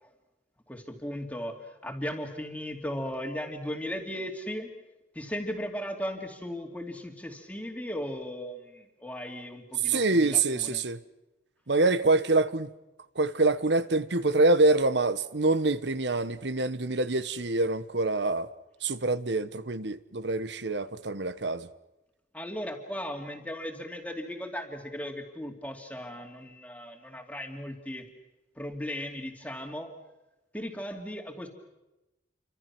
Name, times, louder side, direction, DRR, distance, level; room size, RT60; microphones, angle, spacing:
voice 1, 0.7-4.7 5.1-10.8 22.3-28.1 28.6-29.9 30.5-31.5, equal, 10° left, 2.7 m, -37 dB
voice 2, 9.8-11.0 11.7-12.7 13.1-18.5 18.8-21.7, right 2 dB, 70° right, 1.2 m, -25 dB
29.0 x 25.5 x 6.1 m
head